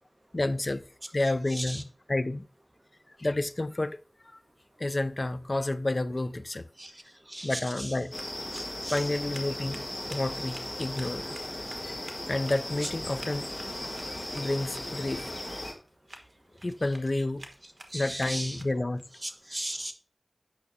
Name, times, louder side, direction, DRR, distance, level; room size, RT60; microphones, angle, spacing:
voice 1, 0.3-0.8 1.1-2.5 3.2-4.0 4.2-4.4 4.8-6.7 7.4-8.1 8.9-11.4 11.8-13.5 13.7-14.1 14.3-15.3 16.6-17.5 17.9-19.0, left 2 dB, 60° left, 0.5 m, -30 dB
voice 2, 1.5-1.8 6.8-6.9 7.3-7.9 8.5-9.0 12.8-12.9 17.9-18.6 19.2-19.9, right 1 dB, 35° right, 1.1 m, -37 dB
sound 1, 7.9-19.0, right 1 dB, 70° right, 1.3 m, -51 dB
sound 2, 8.1-15.7, left 1 dB, 35° left, 1.9 m, -37 dB
8.5 x 6.2 x 2.7 m
wide cardioid pair, 50°, 0 cm